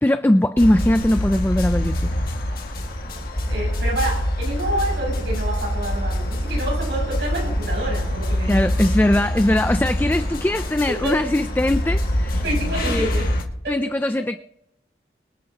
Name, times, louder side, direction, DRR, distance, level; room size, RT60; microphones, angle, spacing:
voice 1, 0.0-2.2 8.5-12.4 12.8-13.1 13.7-14.4, left 1 dB, 10° left, 0.4 m, -20 dB
sound 1, 0.6-13.4, equal, 55° left, 1.9 m, -24 dB
voice 2, 3.5-8.8 11.0-11.1 12.4-13.3 13.6-13.7, right 1 dB, 75° right, 6.7 m, -28 dB
25.0 x 9.7 x 2.9 m
head